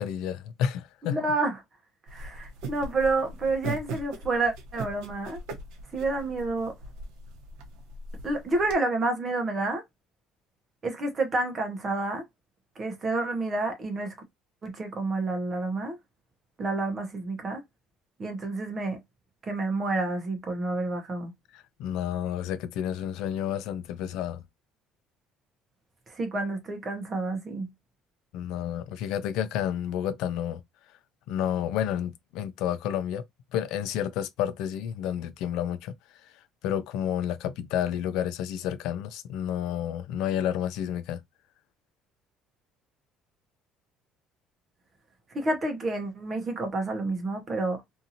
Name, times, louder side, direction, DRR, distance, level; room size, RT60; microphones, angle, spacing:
voice 1, 0.0-1.2 21.5-24.4 28.3-30.6 31.3-33.2 33.5-35.9 36.6-41.2, left 10 dB, 65° left, 0.4 m, -30 dB
voice 2, 1.1-1.6 2.1-5.4 5.9-6.7 8.2-9.8 10.8-12.2 12.8-14.1 14.6-16.0 16.6-17.6 18.2-19.0 19.5-21.3 26.1-27.7 45.3-47.8, right 2 dB, 25° right, 0.8 m, -29 dB
sound 1, 2.1-8.7, right 3 dB, 80° right, 0.9 m, -40 dB
2.8 x 2.6 x 2.6 m
cardioid pair, 180°, 0 cm